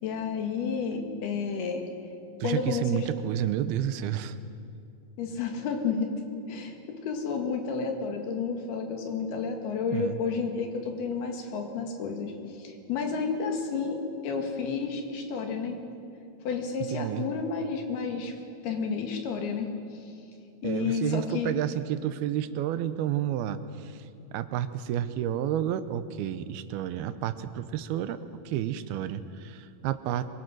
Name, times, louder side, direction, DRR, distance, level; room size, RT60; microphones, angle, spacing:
voice 1, 0.0-1.9 2.4-3.1 5.2-6.1 6.5-15.8 16.5-18.3 18.6-20.1 20.6-21.5, left 5 dB, 85° left, 3 dB, 4.0 m, -31 dB
voice 2, 2.4-4.4 9.9-10.2 16.9-17.3 20.6-23.6 24.3-28.2 28.5-30.3, right 11 dB, 85° right, 12 dB, 2.7 m, -30 dB
25.0 x 22.5 x 6.2 m, 2.5 s
omnidirectional pair, 4.4 m